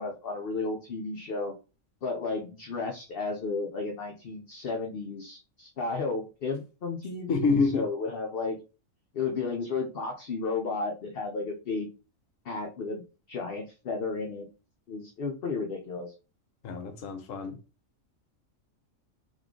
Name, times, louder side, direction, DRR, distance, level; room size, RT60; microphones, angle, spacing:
voice 1, 0.0-1.5 2.0-8.6 9.1-12.0 12.4-13.0 13.3-14.5 14.9-16.1, left 4 dB, 55° left, 0.8 m, -33 dB
voice 2, 7.3-7.9 16.6-17.6, left 4 dB, 70° left, 1.2 m, -27 dB
3.6 x 3.1 x 3.6 m
omnidirectional pair, 1.4 m